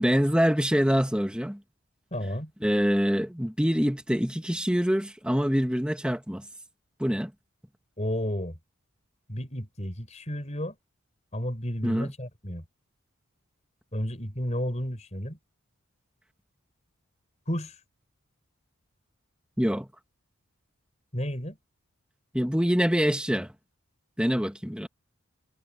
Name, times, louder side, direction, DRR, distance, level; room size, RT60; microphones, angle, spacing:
voice 1, 0.0-1.6 2.6-6.4 7.0-7.3 11.8-12.1 19.6-19.9 22.3-23.5 24.2-24.9, equal, 5° right, 1.7 m, -25 dB
voice 2, 2.1-2.5 8.0-8.6 9.3-10.7 11.3-12.6 13.9-15.4 17.5-17.7 21.1-21.6, equal, 30° left, 5.0 m, -32 dB
head